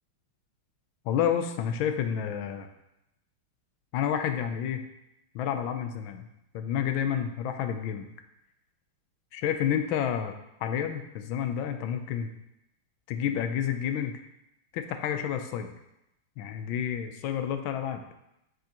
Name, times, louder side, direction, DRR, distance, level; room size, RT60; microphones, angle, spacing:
voice 1, 1.1-2.7 3.9-4.8 5.3-6.3 6.5-8.1 9.3-10.3 10.6-12.3 13.1-14.2 14.7-15.7 16.4-18.0, left 9 dB, 75° left, 7 dB, 1.3 m, -29 dB
8.0 x 5.3 x 2.9 m, 0.87 s
omnidirectional pair, 2.3 m